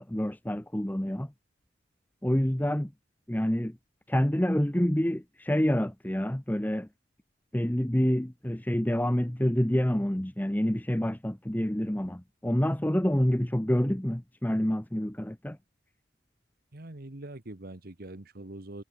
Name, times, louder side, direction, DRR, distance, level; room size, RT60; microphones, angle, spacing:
voice 1, 0.0-1.3 2.2-2.9 3.3-3.8 4.1-6.9 7.5-15.6, equal, 10° left, 0.8 m, -27 dB
voice 2, 16.7-18.8, right 1 dB, 50° right, 1.5 m, -43 dB
head